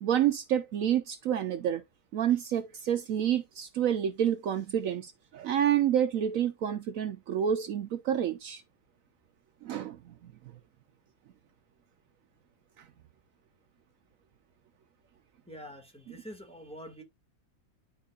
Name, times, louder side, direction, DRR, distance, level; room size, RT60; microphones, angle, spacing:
voice 1, 0.0-1.8 2.1-8.6 9.6-10.1 12.8-12.9, right 10 dB, 85° right, 0.7 m, -28 dB
voice 2, 15.5-17.0, equal, 5° left, 1.6 m, -45 dB
11.5 x 4.5 x 2.4 m
omnidirectional pair, 2.1 m